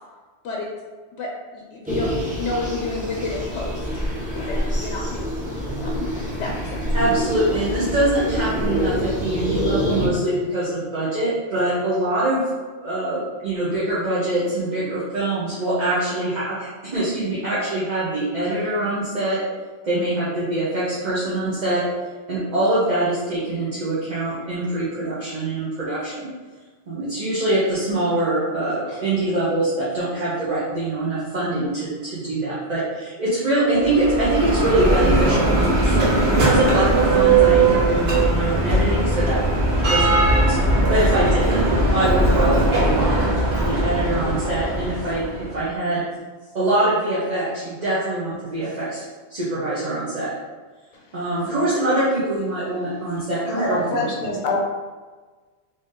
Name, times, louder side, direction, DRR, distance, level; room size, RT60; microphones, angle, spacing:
voice 1, 1.2-2.1 2.4-3.9 4.3-6.8, left 3 dB, 85° left, -3 dB, 0.9 m, -31 dB
sound 1, 1.8-10.1, equal, 10° right, 0.8 m, -26 dB
voice 2, 6.9-12.4 12.8-19.4 19.8-21.8 22.3-26.3 26.9-39.4 39.9-40.1 40.5-41.6 41.9-43.2 43.6-46.0 46.5-49.0 49.3-50.3 51.1-54.1, right 1 dB, 40° right, -10 dB, 1.0 m, -24 dB
Bell, 33.7-45.5, right 2 dB, 65° right, 1.2 m, -19 dB
voice 3, 53.5-54.6, left 3 dB, 50° left, -1 dB, 0.8 m, -26 dB
3.5 x 2.7 x 3.6 m, 1.4 s
omnidirectional pair, 1.2 m